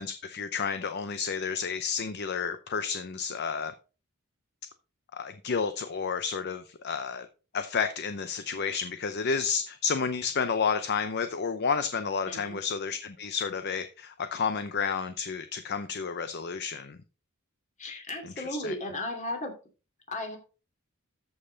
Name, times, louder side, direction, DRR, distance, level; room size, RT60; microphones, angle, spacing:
voice 1, 0.0-3.7 5.1-7.3 7.5-17.0 18.2-18.7, left 6 dB, 50° left, 0.6 m, -31 dB
voice 2, 12.3-12.6 17.8-19.5 20.1-20.4, left 1 dB, 35° left, 2.6 m, -35 dB
13.5 x 5.6 x 3.9 m
head